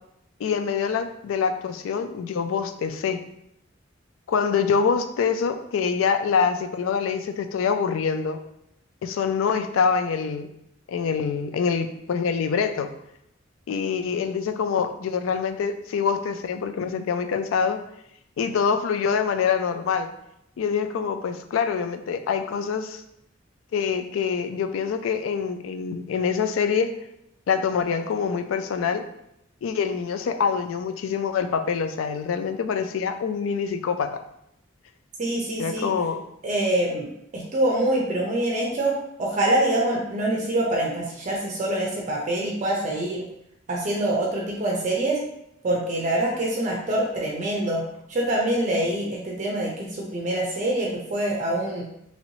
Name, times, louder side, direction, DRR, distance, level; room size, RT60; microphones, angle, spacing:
voice 1, 0.4-3.2 4.3-8.4 9.0-10.5 10.9-12.9 13.7-17.8 18.4-20.1 20.6-23.0 23.7-26.9 27.5-29.0 29.6-34.2 35.6-36.2, left 6 dB, 85° left, 8 dB, 0.3 m, -25 dB
voice 2, 35.2-35.9 36.4-43.2 43.7-45.2 45.6-47.8 48.1-51.8, right 1 dB, 40° right, -2 dB, 0.5 m, -25 dB
3.0 x 2.9 x 2.7 m, 0.78 s
head